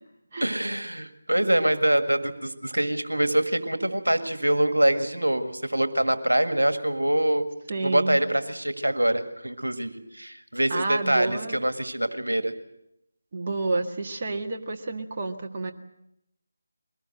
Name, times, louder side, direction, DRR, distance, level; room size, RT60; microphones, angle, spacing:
voice 1, 0.4-7.5 7.8-12.5, right 1 dB, 85° right, 9 dB, 1.8 m, -24 dB
voice 2, 7.7-8.2 10.7-11.6 13.3-15.7, right 3 dB, 40° right, 2 dB, 1.7 m, -29 dB
22.5 x 19.0 x 7.9 m, 0.82 s
figure-of-eight pair, 160°, 0 cm